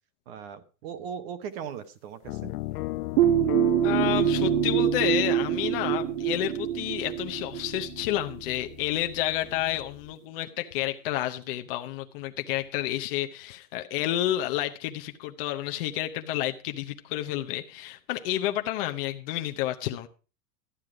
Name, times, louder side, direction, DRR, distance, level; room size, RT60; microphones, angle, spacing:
voice 1, 0.3-2.5, right 8 dB, 40° right, 1.0 m, -38 dB
sound 1, 2.2-10.1, left 20 dB, 85° left, 0.7 m, -37 dB
sound 2, 3.2-8.7, right 13 dB, 65° right, 0.6 m, -25 dB
voice 2, 3.8-20.1, left 14 dB, 40° left, 0.7 m, -30 dB
12.5 x 9.3 x 4.9 m
supercardioid pair, 175°, 45 cm